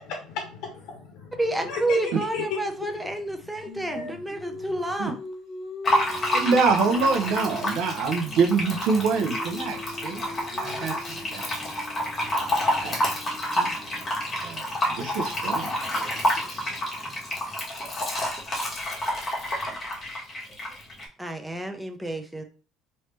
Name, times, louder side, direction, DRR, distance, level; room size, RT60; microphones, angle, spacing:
voice 1, 0.0-5.1, left 5 dB, 75° left, 2 dB, 0.7 m, -36 dB
voice 2, 1.4-5.2 21.2-22.4, right 2 dB, 5° right, 6 dB, 0.5 m, -29 dB
Singing, 3.6-8.0 8.2-14.2, left 2 dB, 50° left, 1.1 m, -41 dB
Fill (with liquid), 5.8-21.0, equal, 25° left, 1.2 m, -29 dB
voice 3, 6.3-10.3 10.5-11.4 12.5-13.0 13.5-13.8 14.4-16.1 16.5-16.7, right 4 dB, 75° right, 5 dB, 0.7 m, -26 dB
3.3 x 2.8 x 3.1 m, 0.37 s
cardioid pair, 125°, 0 cm